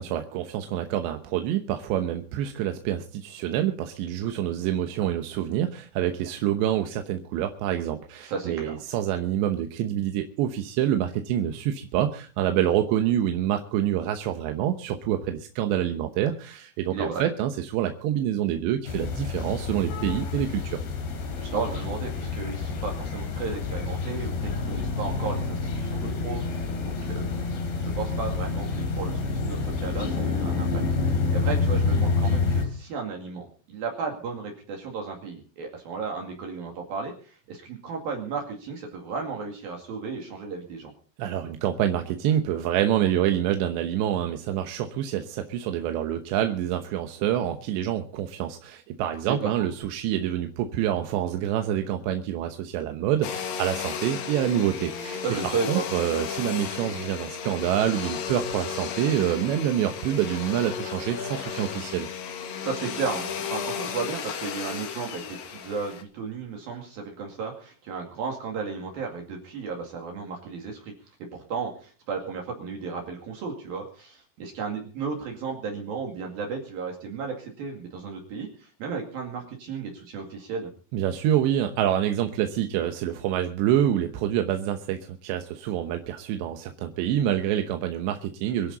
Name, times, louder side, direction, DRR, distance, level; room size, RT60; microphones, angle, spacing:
voice 1, 0.0-20.8 41.2-62.1 80.9-88.8, right 11 dB, 85° right, 6 dB, 3.3 m, -27 dB
voice 2, 8.2-8.7 16.9-17.2 21.4-27.4 27.8-40.9 49.3-49.5 55.2-55.9 62.6-70.9 71.3-80.7, right 5 dB, 60° right, 1 dB, 3.9 m, -34 dB
sound 1, 18.9-32.7, left 4 dB, 80° left, 4.9 m, -28 dB
Domestic sounds home sounds, 53.2-66.0, left 7 dB, 60° left, 3.2 m, -34 dB
25.0 x 11.0 x 4.1 m, 0.39 s
omnidirectional pair, 4.9 m